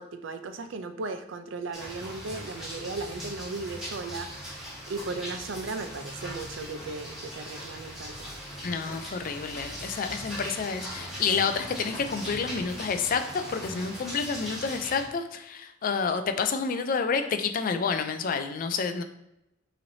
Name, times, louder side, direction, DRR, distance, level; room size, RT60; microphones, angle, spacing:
voice 1, 0.0-8.3, right 3 dB, 70° right, 9 dB, 0.4 m, -36 dB
sound 1, 1.7-15.0, equal, ahead, 1.6 m, -39 dB
voice 2, 8.6-19.0, left 5 dB, 45° left, 8 dB, 0.4 m, -29 dB
5.7 x 3.1 x 2.7 m, 0.84 s
head